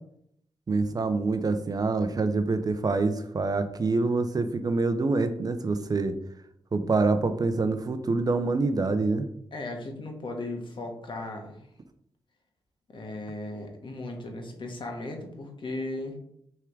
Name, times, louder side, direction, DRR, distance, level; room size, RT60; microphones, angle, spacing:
voice 1, 0.7-6.2 6.7-9.3, right 3 dB, 40° right, 9 dB, 0.6 m, -26 dB
voice 2, 9.5-11.6 12.9-16.2, left 2 dB, 55° left, 2 dB, 1.4 m, -36 dB
6.7 x 3.6 x 4.7 m, 0.71 s
wide cardioid pair, 105°, 10 cm